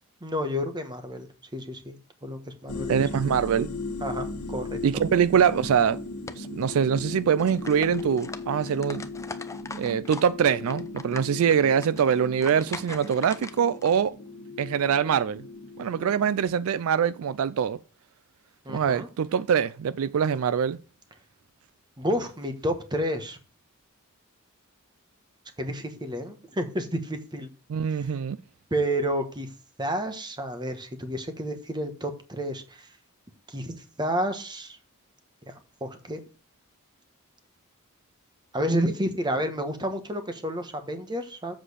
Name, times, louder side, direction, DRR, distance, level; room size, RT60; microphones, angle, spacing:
voice 1, 0.2-2.0 2.2-3.0 4.0-5.0 18.6-19.1 22.0-23.4 25.6-27.5 27.9-28.2 28.7-32.9 33.5-34.8 35.4-36.2 38.5-41.5, equal, 20° right, 1.2 m, -30 dB
sound 1, 2.7-16.4, left 3 dB, 80° left, 1.3 m, -38 dB
voice 2, 2.9-3.7 4.8-6.0 6.4-9.0 9.8-14.1 14.6-15.4 15.8-17.8 18.7-20.8 27.7-28.4, right 7 dB, 70° right, 0.4 m, -24 dB
sound 2, 5.5-5.8 6.3-7.0 7.3-10.3 10.6-14.0, left 3 dB, 15° left, 0.6 m, -41 dB
7.7 x 6.4 x 4.9 m
head